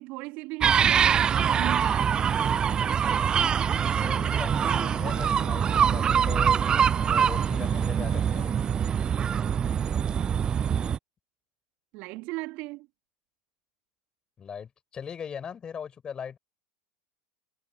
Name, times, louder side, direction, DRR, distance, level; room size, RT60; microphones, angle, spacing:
voice 1, 0.0-2.6 11.9-12.9, right 23 dB, 55° right, 3.3 m, -37 dB
sound 1, 0.6-11.0, right 8 dB, 30° right, 0.5 m, -24 dB
sound 2, 1.5-8.6, left 22 dB, 50° left, 2.1 m, -52 dB
voice 2, 3.9-8.5 14.4-16.4, left 7 dB, 30° left, 5.8 m, -39 dB
figure-of-eight pair, 80°, 3 cm